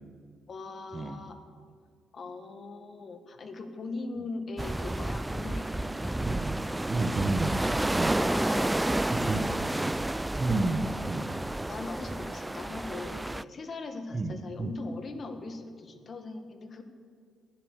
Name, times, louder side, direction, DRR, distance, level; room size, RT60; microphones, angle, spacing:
voice 1, 0.5-1.4 2.1-6.2 8.2-9.8 11.7-16.8, left 3 dB, 45° left, 7 dB, 1.7 m, -40 dB
sound 1, 4.6-13.4, right 1 dB, 10° right, 0.3 m, -30 dB
voice 2, 6.2-6.6 6.9-8.2 9.1-9.5 9.7-9.9 10.4-11.3 14.1-14.7, right 2 dB, 25° right, 8 dB, 1.4 m, -31 dB
19.5 x 11.0 x 6.7 m, 2.1 s
cardioid pair, 90°, 0 cm